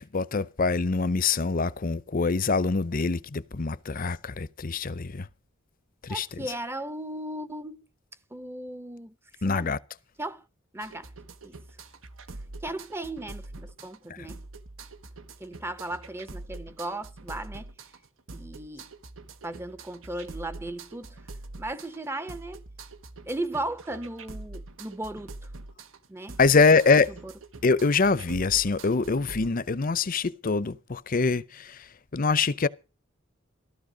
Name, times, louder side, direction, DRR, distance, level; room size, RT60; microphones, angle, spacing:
voice 1, 0.0-5.3 6.0-6.4 9.4-9.8 14.1-14.3 26.4-27.2 27.6-32.7, left 4 dB, 45° left, 0.7 m, -24 dB
voice 2, 6.1-7.8 8.3-9.1 9.4-9.7 10.2-10.5 10.7-11.1 11.4-11.6 12.6-14.4 15.4-17.7 18.3-18.9 19.4-21.2 21.6-22.6 23.3-25.5 26.1-26.4 27.2-27.3, right 1 dB, 10° right, 0.6 m, -36 dB
sound 1, 10.8-29.5, right 2 dB, 85° right, 1.2 m, -44 dB
14.5 x 13.0 x 5.0 m
head